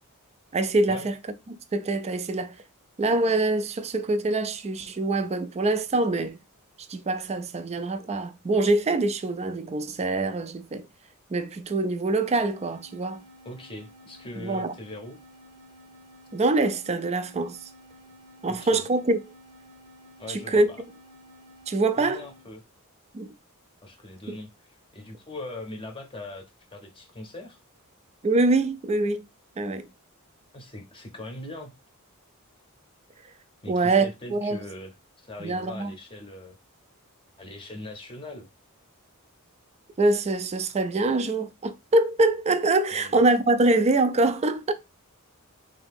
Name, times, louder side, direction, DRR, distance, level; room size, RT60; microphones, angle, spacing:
voice 1, 0.5-1.2 1.5-2.5 3.0-6.4 6.9-10.9 11.3-13.2 14.4-14.7 16.3-17.6 18.4-19.2 20.3-20.7 21.7-22.2 23.1-23.3 24.3-24.4 28.2-29.2 29.6-29.9 33.7-34.6 35.4-35.9 40.0-44.7, right 2 dB, 30° right, 0.4 m, -24 dB
sound 1, 12.1-22.5, equal, 75° right, 0.9 m, -52 dB
voice 2, 13.4-15.2 18.5-18.8 20.2-20.8 21.7-22.6 23.8-27.6 30.5-31.7 33.6-36.5 37.4-38.5 42.9-43.2, left 2 dB, 25° left, 0.7 m, -41 dB
3.9 x 2.8 x 3.5 m
head